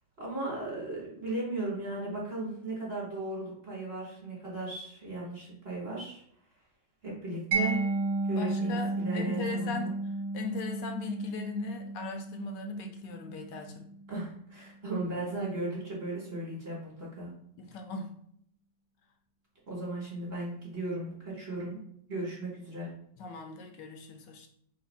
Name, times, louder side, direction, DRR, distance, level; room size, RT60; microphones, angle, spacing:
voice 1, 0.2-6.2 7.0-7.9 8.3-9.9 14.1-17.3 19.7-21.8 22.1-22.9, right 2 dB, 40° right, -4 dB, 1.4 m, -36 dB
Mallet percussion, 7.5-14.3, right 3 dB, 80° right, 1.2 m, -33 dB
voice 2, 8.4-10.0 10.3-13.9 17.6-18.2 23.2-24.5, left 4 dB, 80° left, 5 dB, 1.2 m, -39 dB
3.3 x 2.7 x 4.0 m, 0.67 s
omnidirectional pair, 1.9 m